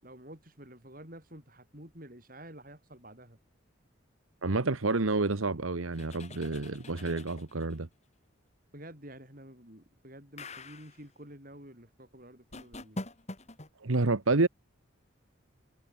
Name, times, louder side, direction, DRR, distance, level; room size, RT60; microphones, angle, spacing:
voice 1, 0.0-3.4 8.7-13.0, right 1 dB, 45° right, 7.5 m, -50 dB
voice 2, 4.4-7.9 13.8-14.5, right 3 dB, 85° right, 1.3 m, -29 dB
sound 1, 5.9-7.8 10.4-11.0 12.5-13.7, left 2 dB, 35° left, 2.6 m, -44 dB
head